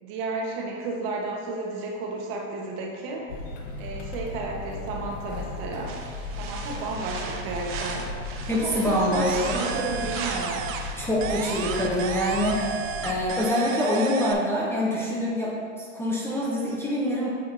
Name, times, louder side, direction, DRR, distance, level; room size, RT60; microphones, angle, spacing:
voice 1, 0.0-3.3 3.8-6.0 6.4-8.1 8.5-10.7, right 3 dB, 50° right, -1 dB, 1.3 m, -32 dB
sound 1, 3.3-13.3, left 3 dB, 70° left, 1.2 m, -36 dB
sound 2, 5.9-12.3, right 4 dB, 35° right, 0.7 m, -38 dB
voice 2, 8.5-9.7 11.0-17.3, equal, 5° left, -5 dB, 0.5 m, -25 dB
sound 3, 9.1-10.9 11.2-14.3, right 7 dB, 85° right, 0.6 m, -33 dB
7.9 x 5.0 x 2.7 m, 2.1 s
supercardioid pair, 130°, 39 cm